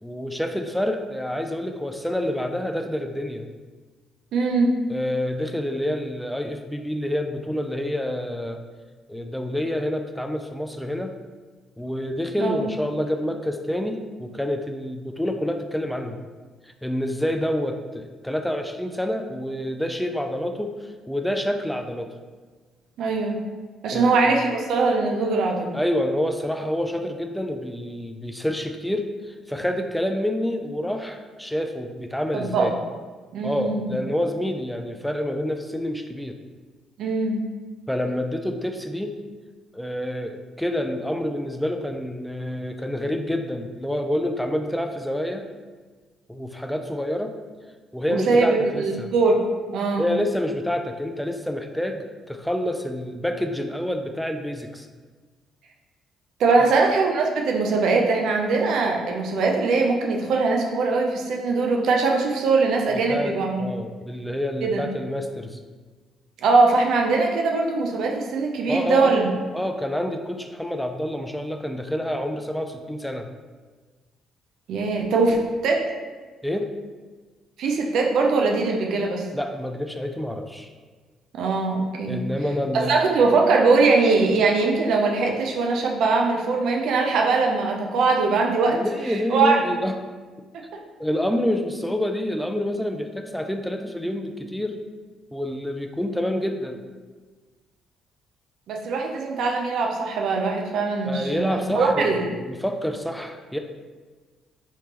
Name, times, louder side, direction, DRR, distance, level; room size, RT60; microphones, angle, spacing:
voice 1, 0.0-3.5 4.9-8.6 9.1-11.1 11.8-16.2 16.6-22.1 23.9-24.2 25.7-32.7 33.4-36.4 37.9-39.2 39.7-45.4 46.3-47.4 47.9-49.1 50.0-54.9 56.6-56.7 63.1-65.6 68.7-69.2 69.5-73.3 76.4-76.7 79.3-80.7 82.1-83.1 88.7-89.9 91.0-94.8 95.3-96.8 101.0-103.6, left 1 dB, 5° left, 5 dB, 0.3 m, -28 dB
voice 2, 4.3-4.7 12.4-12.6 23.0-23.4 23.8-25.7 32.3-32.7 33.3-33.9 37.0-37.4 48.1-49.4 49.7-50.1 56.4-63.6 64.6-64.8 66.4-69.3 74.7-75.9 77.6-79.2 81.3-82.2 82.8-88.8 89.1-89.6 98.7-102.2, right 3 dB, 70° right, 1 dB, 0.5 m, -21 dB
3.2 x 3.2 x 2.9 m, 1.4 s
supercardioid pair, 60°, 0 cm